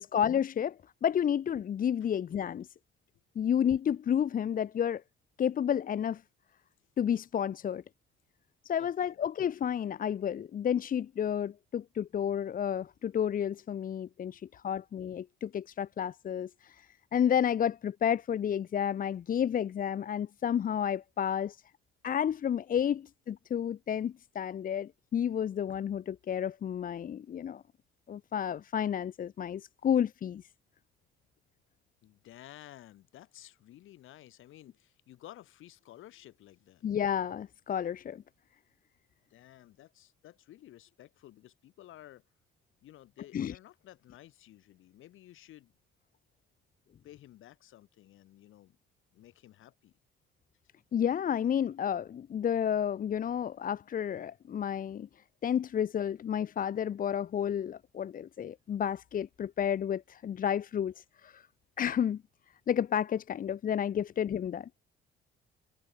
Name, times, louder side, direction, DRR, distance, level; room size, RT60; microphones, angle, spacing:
voice 1, 0.0-2.7 3.3-5.0 5.4-6.2 7.0-7.8 8.6-21.6 22.0-23.0 23.3-27.6 28.1-30.4 36.8-38.2 43.3-43.5 50.9-55.1 55.4-61.5 61.8-62.2 62.7-64.8, left 9 dB, 40° left, 1.3 m, -31 dB
voice 2, 8.8-9.2 14.3-14.6 32.0-36.8 39.3-42.2 42.8-45.7 47.0-48.8 49.1-50.0, left 14 dB, 70° left, 7.0 m, -54 dB
cardioid pair, 140°, 21 cm